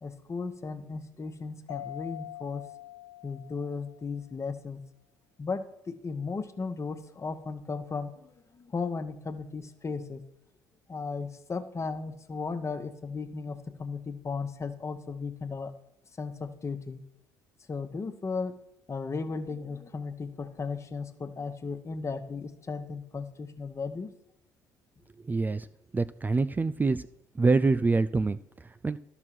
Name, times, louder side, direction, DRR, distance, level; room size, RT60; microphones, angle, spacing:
voice 1, 0.0-2.6 3.2-4.8 5.4-10.2 10.9-15.7 16.2-17.0 17.7-18.5 18.9-24.1, left 4 dB, 30° left, 9 dB, 1.3 m, -35 dB
Mallet percussion, 1.7-4.2, left 15 dB, 80° left, 0.9 m, -44 dB
voice 2, 25.2-25.7 25.9-27.0 27.4-29.0, right 3 dB, 20° right, 12 dB, 0.4 m, -26 dB
12.0 x 6.1 x 6.0 m, 0.77 s
hypercardioid pair, 60°, 9 cm